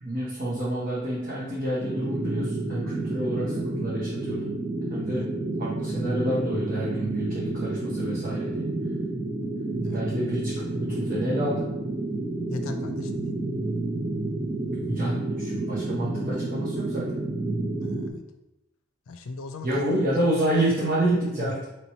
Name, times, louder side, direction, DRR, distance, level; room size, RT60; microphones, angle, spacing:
voice 1, 0.0-4.5 4.9-5.3 5.6-8.7 9.9-11.6 14.7-17.1 19.6-21.6, right 1 dB, 45° right, -9 dB, 1.0 m, -28 dB
sound 1, 1.8-18.1, right 2 dB, 25° right, 0.5 m, -30 dB
voice 2, 12.5-13.4 17.8-18.2 19.1-20.2 21.4-21.6, left 3 dB, 85° left, 7 dB, 0.4 m, -39 dB
3.0 x 3.0 x 4.2 m, 0.91 s
head